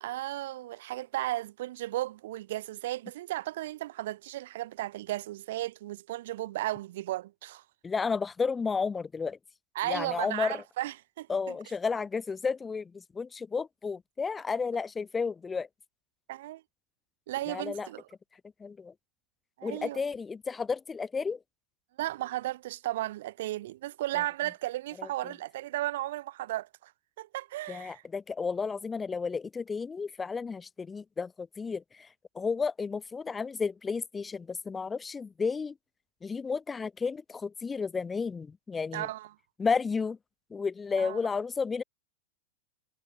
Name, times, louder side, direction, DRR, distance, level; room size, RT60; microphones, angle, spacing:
voice 1, 0.0-7.6 9.7-11.5 16.3-16.6 17.3-18.1 19.6-20.0 22.0-26.9 27.2-28.0 38.9-39.3 40.9-41.2, right 15 dB, 55° right, 1.5 m, -35 dB
voice 2, 7.8-9.4 9.9-10.6 11.3-15.7 17.5-17.9 18.6-18.9 19.6-21.4 25.0-25.1 27.7-31.8 32.3-35.7 36.2-39.1 39.6-40.2 40.5-41.8, left 5 dB, 15° left, 1.1 m, -32 dB
figure-of-eight pair, 90°, 0 cm